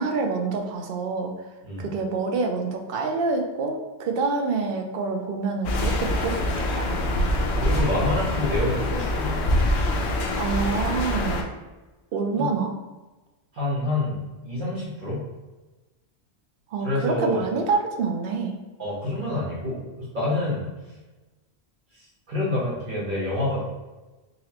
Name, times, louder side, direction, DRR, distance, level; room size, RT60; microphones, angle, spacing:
voice 1, 0.0-1.3 1.8-7.0 10.4-11.5 12.1-12.7 16.7-18.5, right 4 dB, 65° right, 3 dB, 0.7 m, -27 dB
sound 1, 5.6-11.4, left 1 dB, 80° left, 0.9 m, -25 dB
voice 2, 7.6-9.4 12.4-12.5 13.5-15.2 16.8-17.5 18.8-20.7 21.9-23.6, left 2 dB, 50° right, -7 dB, 1.4 m, -27 dB
4.0 x 2.9 x 2.8 m, 1.1 s
omnidirectional pair, 1.1 m